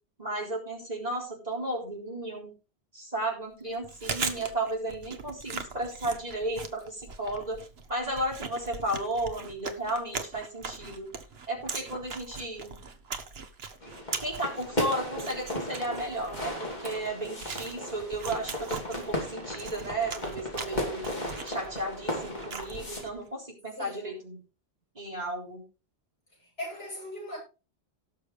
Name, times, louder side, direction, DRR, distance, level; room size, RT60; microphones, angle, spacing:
voice 1, 0.2-2.5 2.9-7.6 7.9-11.1 11.5-12.8 14.2-24.4 24.9-25.6, right 1 dB, 40° right, 4.2 m, -34 dB
Chewing mastication, 3.7-23.2, right 5 dB, 70° right, 1.4 m, -40 dB
sound 1, 13.8-23.0, left 1 dB, 45° left, 3.0 m, -36 dB
voice 2, 23.8-24.2 26.4-27.4, left 1 dB, 75° left, 7.9 m, -39 dB
18.0 x 6.6 x 3.3 m
omnidirectional pair, 1.1 m